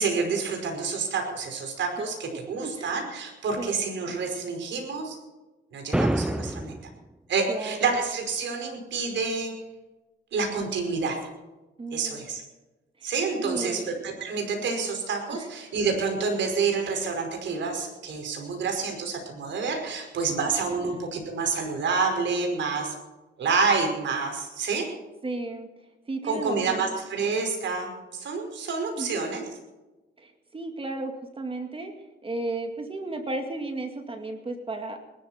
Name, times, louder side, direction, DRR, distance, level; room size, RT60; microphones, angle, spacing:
voice 1, 0.0-5.2 5.7-6.7 7.3-9.5 10.3-11.2 11.9-12.4 13.0-23.0 23.4-24.9 26.2-29.4, right 4 dB, 65° right, 3 dB, 5.2 m, -28 dB
voice 2, 2.6-3.0 3.6-3.8 7.5-7.8 11.8-12.2 13.0-13.1 13.4-13.9 20.8-20.9 25.2-25.7 26.1-27.0 29.0-29.3 30.2-31.9 32.2-35.0, right 2 dB, 25° right, 5 dB, 2.2 m, -34 dB
sound 1, 5.9-6.9, right 1 dB, 5° right, 0.5 m, -26 dB
21.0 x 13.0 x 4.4 m, 1.1 s
cardioid pair, 90°, 20 cm